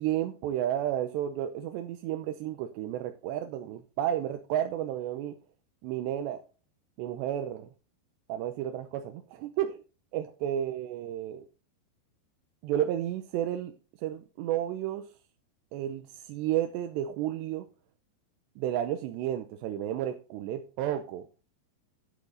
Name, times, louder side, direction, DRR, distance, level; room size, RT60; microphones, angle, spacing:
voice 1, 0.0-5.4 5.8-6.4 7.0-7.7 8.3-9.8 10.1-11.5 12.6-13.7 14.0-15.1 15.7-17.7 18.6-21.3, right 11 dB, 75° right, 7 dB, 2.9 m, -32 dB
11.5 x 8.2 x 4.0 m, 0.33 s
omnidirectional pair, 5.3 m